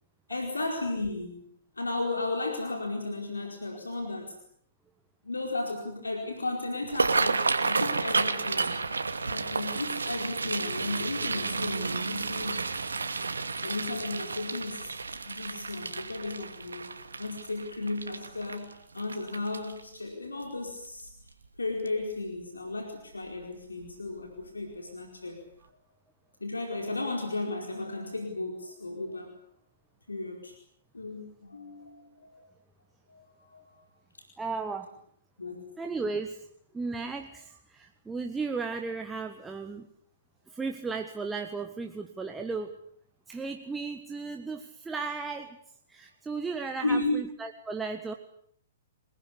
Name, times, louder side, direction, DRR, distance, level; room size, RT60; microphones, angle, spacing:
voice 1, 0.3-1.4 1.8-4.4 5.2-8.7 9.3-12.7 13.6-14.9 15.3-16.9 17.2-21.1 21.6-25.4 26.4-29.3 30.1-30.5 30.9-32.4 33.1-33.8 35.4-35.6 46.8-47.2, left 2 dB, 75° left, 3 dB, 4.7 m, -34 dB
sound 1, 6.8-19.9 20.4-20.7 21.0-21.4 21.9-22.0 23.2-23.4 23.8-23.9 24.4-24.5, right 4 dB, 70° right, 2.5 m, -31 dB
voice 2, 34.4-34.9 35.8-36.5 36.7-39.9 40.5-42.8 43.3-45.6 45.9-48.1, right 4 dB, 10° right, 4 dB, 1.5 m, -35 dB
28.5 x 20.0 x 8.5 m, 0.67 s
figure-of-eight pair, 115°, 0 cm